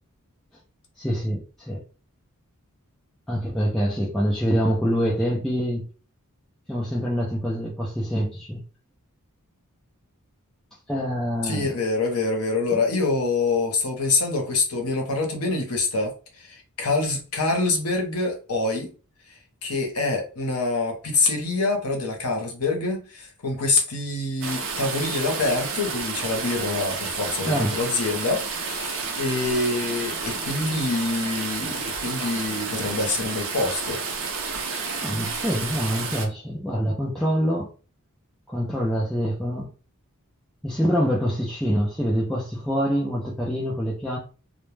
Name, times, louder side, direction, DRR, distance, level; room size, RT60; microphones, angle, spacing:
voice 1, 1.0-1.8 3.3-5.9 6.7-8.6 10.9-11.7 27.5-27.8 35.0-37.7 38.5-39.7 40.6-44.2, equal, ahead, 0.4 m, -25 dB
voice 2, 11.4-18.9 19.6-34.0, left 3 dB, 75° left, 0.7 m, -26 dB
sound 1, 24.4-36.3, right 4 dB, 60° right, 0.5 m, -30 dB
2.1 x 2.1 x 3.1 m
head